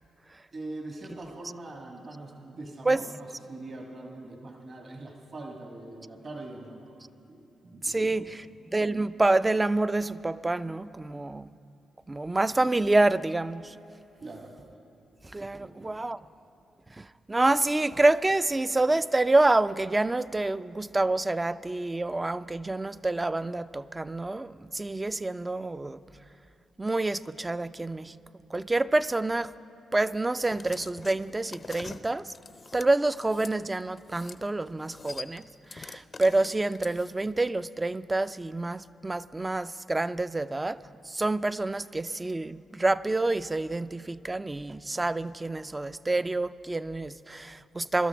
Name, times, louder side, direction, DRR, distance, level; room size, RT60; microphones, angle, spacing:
voice 1, 0.5-8.5 14.2-14.5 15.6-16.1, right 2 dB, 50° right, 1 dB, 1.6 m, -43 dB
voice 2, 7.8-8.5 8.7-11.5 12.1-13.7 15.3-16.2 17.0-26.0 26.8-28.2 28.5-29.5 29.9-32.3 32.7-35.5 35.7-40.8 41.1-48.1, right 2 dB, 20° right, 15 dB, 0.4 m, -27 dB
sound 1, 30.4-33.5 34.0-34.4 34.7-37.3, left 4 dB, 40° left, 0.5 m, -45 dB
22.0 x 12.5 x 3.5 m, 2.7 s
supercardioid pair, 60°, 0 cm